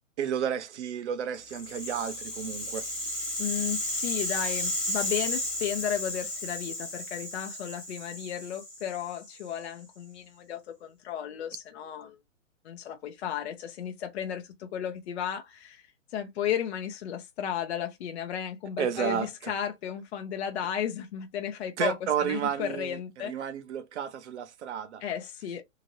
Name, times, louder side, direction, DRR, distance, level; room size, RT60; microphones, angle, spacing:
voice 1, 0.2-2.9 18.8-19.5 21.8-25.0, right 8 dB, 60° right, 0.7 m, -32 dB
Rattle (instrument), 1.4-9.6, left 1 dB, ahead, 0.3 m, -34 dB
voice 2, 3.4-12.2 12.6-15.8 16.1-23.3 25.0-25.6, left 9 dB, 55° left, 0.7 m, -34 dB
2.8 x 2.6 x 2.9 m
hypercardioid pair, 135°, 39 cm